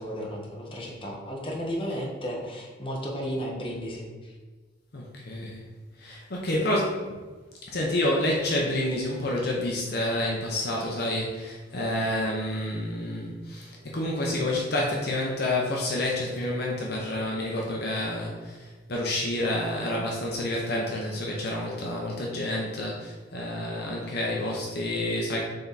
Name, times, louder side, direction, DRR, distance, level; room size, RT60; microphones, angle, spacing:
voice 1, 0.0-4.3, equal, 25° left, -2 dB, 1.1 m, -34 dB
voice 2, 4.9-5.6 6.0-7.1 7.6-25.4, left 1 dB, 55° left, -2 dB, 0.8 m, -29 dB
6.6 x 3.5 x 4.1 m, 1.3 s
head